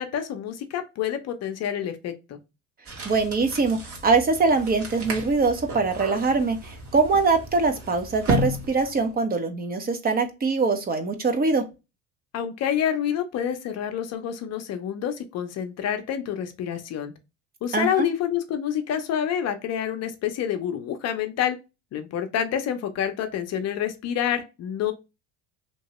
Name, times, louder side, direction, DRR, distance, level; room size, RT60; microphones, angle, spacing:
voice 1, 0.0-2.4 12.3-17.1 17.6-21.6 21.9-24.9, left 9 dB, 45° left, 0.7 m, -28 dB
sound 1, 2.9-9.1, equal, 40° right, 1.3 m, -33 dB
voice 2, 3.0-11.6 17.7-18.1, right 4 dB, 25° right, 0.8 m, -23 dB
3.0 x 2.7 x 2.9 m
supercardioid pair, 95°, 35 cm